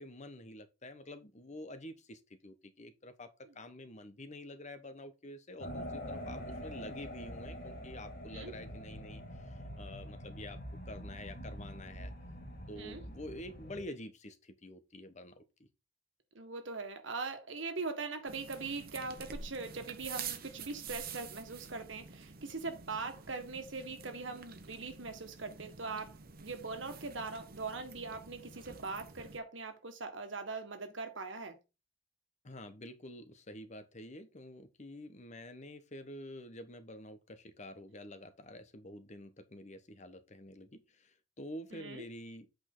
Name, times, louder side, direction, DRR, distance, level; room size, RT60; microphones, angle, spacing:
voice 1, 0.0-3.3 3.5-12.1 12.7-15.4 32.4-42.5, left 1 dB, 40° left, 1.1 m, -48 dB
sound 1, 5.6-13.8, equal, 55° left, 2.8 m, -45 dB
voice 2, 16.3-31.6 41.7-42.0, right 3 dB, 90° right, 1.6 m, -41 dB
sound 2, 18.3-29.4, right 6 dB, 50° right, 1.0 m, -48 dB
8.3 x 5.2 x 3.9 m
head